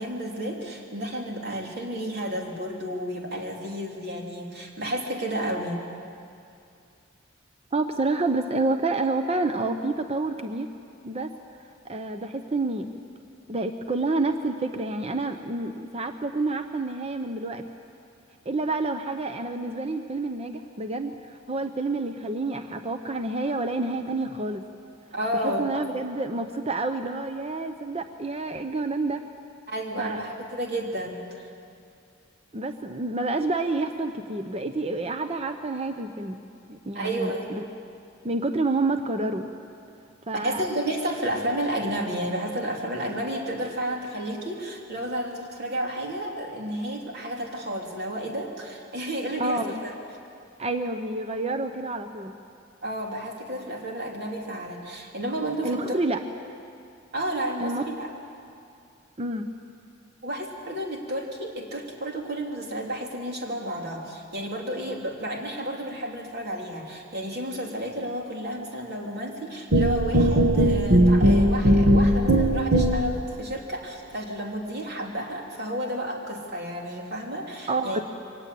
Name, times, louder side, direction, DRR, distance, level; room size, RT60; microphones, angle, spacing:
voice 1, 0.0-5.8 25.1-25.7 29.7-31.5 36.9-37.6 40.3-49.9 52.8-56.0 57.1-58.1 60.2-78.0, right 1 dB, 55° right, 0 dB, 3.4 m, -31 dB
voice 2, 7.7-10.7 11.0-11.3 11.8-12.9 13.5-17.6 18.4-24.6 25.4-29.2 30.0-30.2 32.5-36.4 36.7-37.6 38.2-39.5 40.3-40.6 49.4-49.8 50.6-52.4 55.6-56.2 57.6-57.8 59.2-59.5 77.7-78.0, right 2 dB, 30° right, 7 dB, 0.8 m, -28 dB
sound 1, 69.7-73.2, right 1 dB, 80° right, 1.4 m, -19 dB
23.5 x 19.0 x 8.5 m, 2.5 s
head